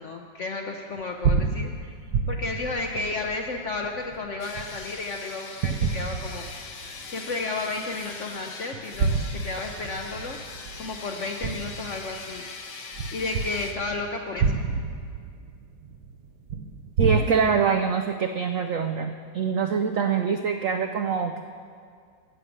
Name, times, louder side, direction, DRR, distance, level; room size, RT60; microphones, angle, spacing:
voice 1, 0.0-1.9 2.3-6.4 7.1-10.4 10.8-12.4 13.1-14.5, left 3 dB, 65° left, 3 dB, 0.7 m, -32 dB
sound 1, 1.0-5.1 5.6-7.0 7.4-7.5 8.7-12.4 12.9-17.2, right 5 dB, 65° right, 1.0 m, -29 dB
sound 2, 4.4-13.7, left 4 dB, 85° left, 1.9 m, -41 dB
voice 2, 17.0-21.4, right 6 dB, 80° right, 6 dB, 0.7 m, -24 dB
12.0 x 7.4 x 9.2 m, 2.2 s
omnidirectional pair, 2.1 m